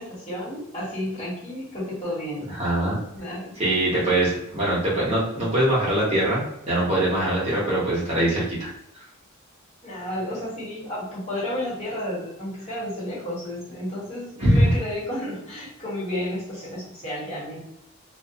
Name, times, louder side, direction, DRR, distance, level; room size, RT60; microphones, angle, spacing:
voice 1, 0.0-2.4 3.1-3.9 9.8-17.6, left 1 dB, 30° left, -8 dB, 1.2 m, -32 dB
voice 2, 2.5-3.0 3.6-8.7 14.4-14.7, right 1 dB, 30° right, -7 dB, 0.9 m, -22 dB
2.5 x 2.1 x 2.7 m, 0.82 s
head